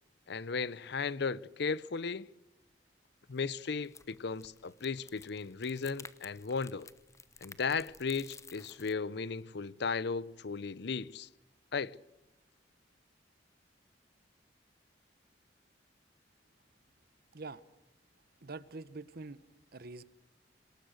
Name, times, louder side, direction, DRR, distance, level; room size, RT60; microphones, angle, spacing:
voice 1, 0.3-2.3 3.3-6.9 7.4-11.3 11.7-12.0, left 5 dB, 65° left, 0.7 m, -35 dB
sound 1, 3.2-8.9, left 4 dB, 15° left, 1.0 m, -54 dB
voice 2, 18.4-19.4 19.7-20.0, right 3 dB, 55° right, 1.0 m, -45 dB
27.0 x 19.5 x 6.5 m
head